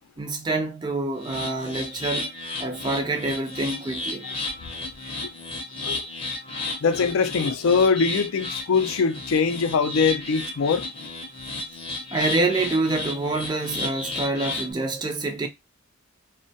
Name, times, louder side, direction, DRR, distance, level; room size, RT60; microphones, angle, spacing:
voice 1, 0.2-2.3 2.6-4.3 5.0-5.1 5.8-6.0 12.1-15.5, right 2 dB, 20° right, 0.4 m, -26 dB
sound 1, 1.2-14.7, left 2 dB, 25° left, 0.6 m, -33 dB
voice 2, 6.8-10.9, left 5 dB, 75° left, 0.4 m, -22 dB
2.2 x 2.1 x 2.7 m
head